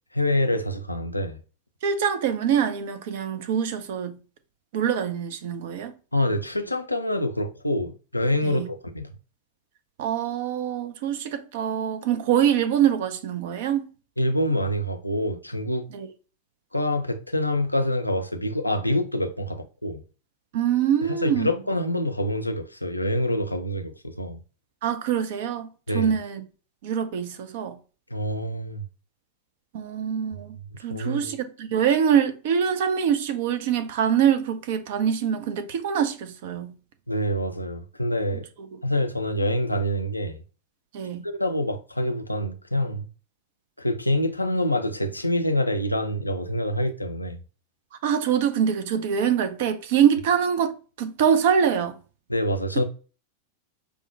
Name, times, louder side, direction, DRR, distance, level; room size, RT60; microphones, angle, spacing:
voice 1, 0.1-1.4 6.1-9.1 14.2-15.8 16.7-20.0 21.2-24.4 25.9-26.1 28.1-28.8 30.9-31.3 37.1-38.5 38.8-40.4 41.2-43.1 43.8-47.4 52.3-52.8, left 1 dB, 85° left, 0.4 m, -26 dB
voice 2, 1.8-4.2 4.7-5.9 8.4-8.7 10.0-13.8 15.9-16.1 20.5-21.5 24.8-25.7 25.9-26.4 26.8-27.8 29.7-30.6 30.8-36.7 40.9-41.3 48.0-52.0, right 8 dB, 55° right, 0.5 m, -24 dB
4.8 x 2.1 x 2.7 m
figure-of-eight pair, 90°, 0 cm